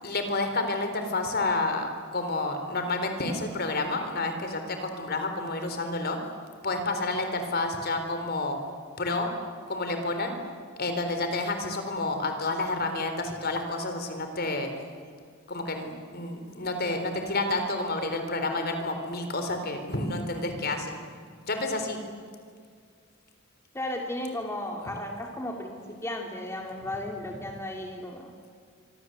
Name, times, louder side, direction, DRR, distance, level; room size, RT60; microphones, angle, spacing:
voice 1, 0.0-6.2 6.6-8.6 9.0-9.3 9.7-10.3 10.8-14.7 15.5-21.0 21.5-22.0, left 2 dB, 50° left, 6 dB, 4.0 m, -29 dB
voice 2, 23.7-28.3, left 1 dB, 15° left, 1 dB, 2.5 m, -35 dB
26.5 x 25.0 x 8.1 m, 2.1 s
head